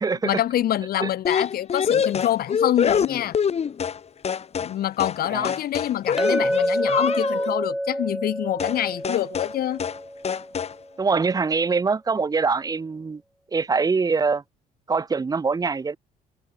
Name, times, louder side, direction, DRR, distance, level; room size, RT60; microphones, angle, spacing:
voice 1, 0.2-3.4 4.6-9.8, left 12 dB, 60° left, 3.8 m, -26 dB
sound 1, 1.2-4.7 5.0-5.2 5.4-7.5 8.6-8.8 9.0-9.5 9.8-10.0 10.2-10.7, left 7 dB, 40° left, 2.9 m, -25 dB
Chink clink, 6.2-10.6, equal, ahead, 3.4 m, -27 dB
voice 2, 11.0-13.2 13.5-14.4 14.9-16.0, right 4 dB, 20° right, 1.4 m, -23 dB
cardioid pair, 110°, 17 cm